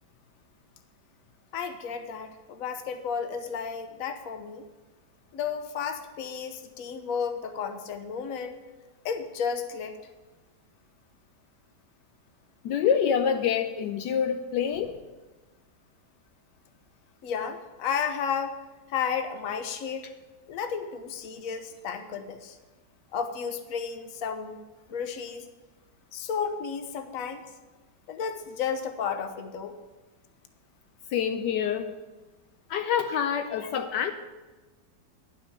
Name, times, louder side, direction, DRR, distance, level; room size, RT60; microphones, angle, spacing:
voice 1, 1.5-4.6 5.3-8.6 9.0-10.0 17.2-18.6 18.9-20.1 20.5-22.6 23.1-24.6 24.9-25.5 26.1-27.5 28.1-29.8, left 6 dB, 55° left, 8 dB, 1.1 m, -32 dB
voice 2, 12.6-15.0 31.1-31.9 32.7-34.1, left 8 dB, 75° left, 7 dB, 1.2 m, -26 dB
10.5 x 6.2 x 7.2 m, 1.2 s
omnidirectional pair, 1.9 m